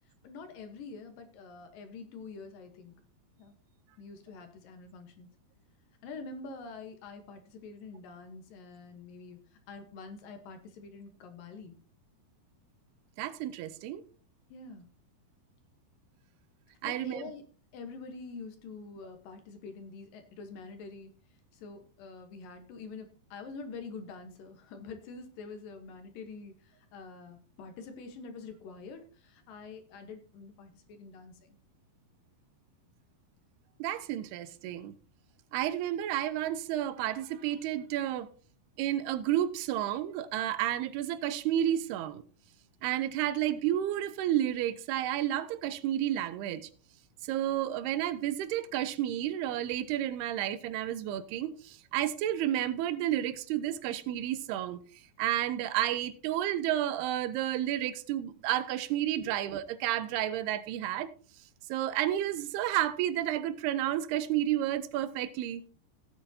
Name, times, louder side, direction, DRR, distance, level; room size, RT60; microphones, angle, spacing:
voice 1, 0.2-3.0 3.4-3.5 4.0-5.3 6.0-9.4 9.7-11.8 14.5-14.9 16.8-17.4 17.7-21.1 21.5-31.6 59.2-59.3, left 4 dB, 70° left, 2.7 m, -46 dB
voice 2, 13.2-14.0 16.8-17.3 33.8-34.9 35.5-38.3 38.8-42.2 42.8-46.7 47.3-54.8 55.2-61.1 61.7-65.6, right 12 dB, 85° right, 2.7 m, -31 dB
17.0 x 8.9 x 2.8 m
omnidirectional pair, 4.6 m